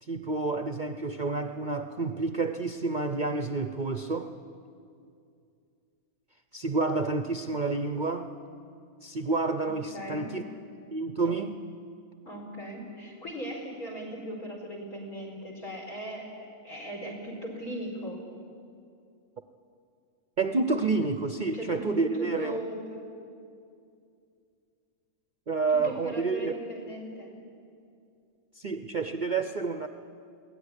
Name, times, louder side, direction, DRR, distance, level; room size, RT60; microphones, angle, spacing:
voice 1, 0.0-4.3 6.5-8.4 9.0-10.4 10.9-11.6 20.4-22.6 25.5-26.5 28.6-29.9, right 3 dB, 45° right, 8 dB, 0.7 m, -29 dB
voice 2, 9.6-10.3 12.2-18.2 21.5-23.1 25.7-27.3, right 1 dB, 75° left, 1 dB, 5.1 m, -38 dB
22.0 x 16.5 x 9.9 m, 2.4 s
omnidirectional pair, 1.6 m